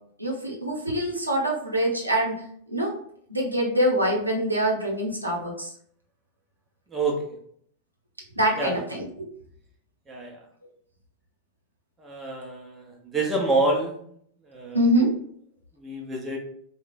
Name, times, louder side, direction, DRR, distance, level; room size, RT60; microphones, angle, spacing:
voice 1, 0.2-3.0 3.3-5.7 8.4-9.3 14.7-15.1, right 1 dB, 85° right, -2 dB, 0.8 m, -25 dB
voice 2, 6.9-7.2 8.6-8.8 10.1-10.4 12.0-14.0 14.5-14.8 15.8-16.4, right 2 dB, 15° right, -1 dB, 0.8 m, -27 dB
3.7 x 2.3 x 3.4 m, 0.64 s
figure-of-eight pair, 90°, 0 cm